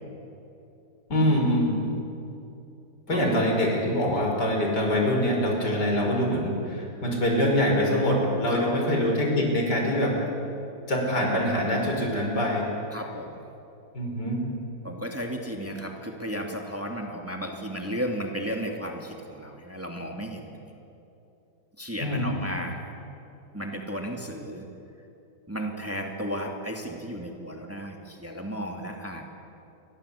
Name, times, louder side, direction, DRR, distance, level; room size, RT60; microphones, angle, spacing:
voice 1, 1.1-1.8 3.1-10.2 10.9-12.7 13.9-14.4 22.0-22.3, equal, 75° left, 0 dB, 6.0 m, -24 dB
voice 2, 8.5-8.8 12.9-13.4 14.8-20.7 21.8-22.8 23.5-24.7 25.5-29.2, equal, 10° right, 1 dB, 2.5 m, -34 dB
29.0 x 23.5 x 8.5 m, 2.9 s
omnidirectional pair, 1.8 m